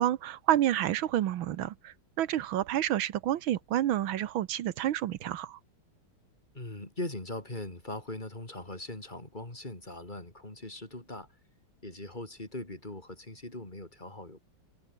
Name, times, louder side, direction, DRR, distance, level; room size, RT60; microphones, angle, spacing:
voice 1, 0.0-5.6, right 12 dB, 80° right, 1.7 m, -29 dB
voice 2, 6.5-11.3 11.8-14.4, left 1 dB, 20° left, 4.0 m, -40 dB
omnidirectional pair, 2.2 m